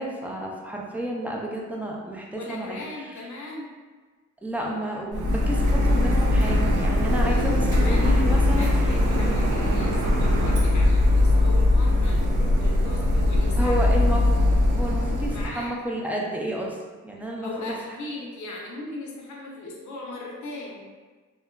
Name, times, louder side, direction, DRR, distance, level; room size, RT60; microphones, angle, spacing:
voice 1, 0.0-3.3 4.4-8.7 9.1-9.5 13.6-14.3 14.7-16.8 17.0-17.5, right 1 dB, 5° right, -2 dB, 0.5 m, -31 dB
voice 2, 2.3-3.7 7.2-13.8 15.3-16.0 17.4-20.8, left 2 dB, 75° left, -2 dB, 0.7 m, -38 dB
Printer, 5.1-15.5, left 1 dB, 80° right, 0.5 m, -21 dB
2.8 x 2.2 x 2.2 m, 1.4 s
cardioid pair, 55°, 30 cm